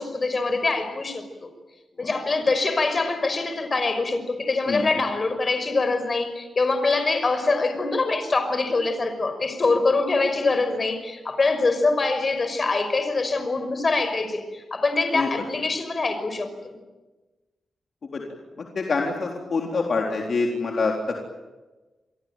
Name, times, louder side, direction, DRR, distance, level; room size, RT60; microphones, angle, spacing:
voice 1, 0.0-1.5 2.0-16.7, left 3 dB, 40° left, 9 dB, 5.8 m, -24 dB
voice 2, 18.6-21.2, left 4 dB, 55° left, 1 dB, 3.8 m, -26 dB
28.5 x 22.5 x 9.2 m, 1.2 s
cardioid pair, 85°, 0 cm